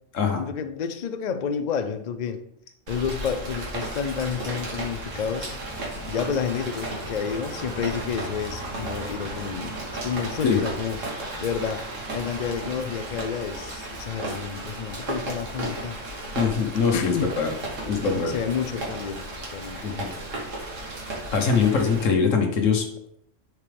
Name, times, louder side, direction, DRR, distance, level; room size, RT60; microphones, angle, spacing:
voice 1, 0.4-2.4 2.9-5.5 6.1-11.8 12.1-16.0 16.9-17.3 18.1-19.2 19.5-19.9, left 7 dB, 55° left, 9 dB, 0.5 m, -30 dB
Rain, 2.9-22.1, right 1 dB, 75° right, 1.8 m, -34 dB
voice 2, 16.3-17.5 17.9-18.3 19.8-20.1 21.3-22.9, left 5 dB, 75° left, 4 dB, 1.5 m, -22 dB
10.5 x 4.6 x 3.4 m, 0.77 s
omnidirectional pair, 1.3 m